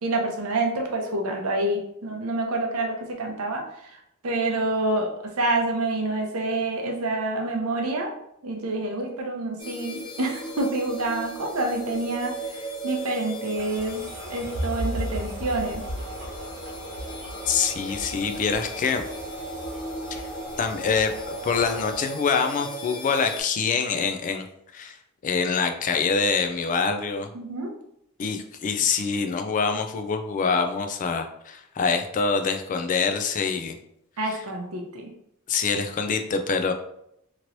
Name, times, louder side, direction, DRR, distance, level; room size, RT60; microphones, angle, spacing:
voice 1, 0.0-8.1 8.4-14.0 14.3-15.8 27.3-27.7 34.2-35.1, right 2 dB, 70° right, 2 dB, 0.7 m, -27 dB
sound 1, 9.6-23.4, right 1 dB, 20° left, 0.8 m, -38 dB
sound 2, 13.5-22.0, right 1 dB, 55° right, 1.1 m, -35 dB
voice 2, 17.5-19.0 20.6-24.4 24.7-25.0 25.2-27.3 28.2-33.8 34.3-34.4 35.5-36.7, left 5 dB, 35° left, 6 dB, 0.3 m, -25 dB
3.0 x 2.9 x 2.6 m, 0.76 s
head